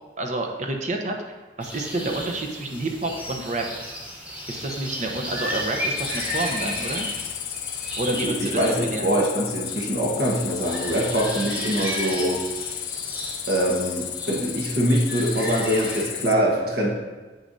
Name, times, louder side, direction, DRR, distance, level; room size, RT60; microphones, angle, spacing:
voice 1, 0.2-1.1 1.6-3.9 4.5-7.1 8.0-9.1, right 2 dB, 45° right, 2 dB, 0.8 m, -29 dB
sound 1, 1.6-16.1, equal, 10° right, 1.4 m, -34 dB
Cricket, 6.0-16.3, left 10 dB, 70° left, 0.5 m, -33 dB
voice 2, 8.2-12.4 13.5-16.9, equal, 60° right, -2 dB, 1.4 m, -23 dB
8.5 x 6.7 x 2.7 m, 1.3 s
head